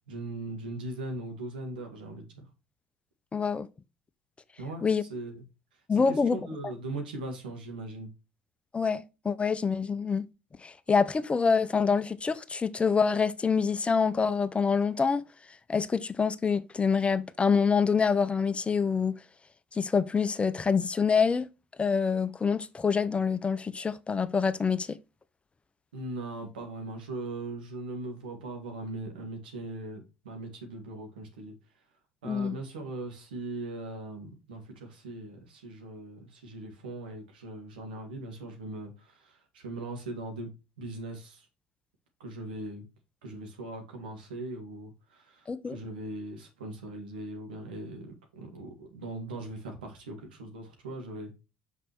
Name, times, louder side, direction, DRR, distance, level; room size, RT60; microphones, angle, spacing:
voice 1, 0.1-2.5 4.6-5.4 5.9-8.1 25.9-31.6 32.2-40.5 40.8-41.5 42.2-42.8 43.2-51.3, right 2 dB, 90° right, 1.9 m, -40 dB
voice 2, 3.3-3.7 4.8-5.0 5.9-6.4 8.7-10.3 10.6-15.2 15.7-19.2 19.7-21.5 21.8-25.0 32.2-32.6 45.5-45.8, left 5 dB, 25° left, 0.6 m, -26 dB
5.9 x 5.5 x 3.0 m
hypercardioid pair, 70°, 5 cm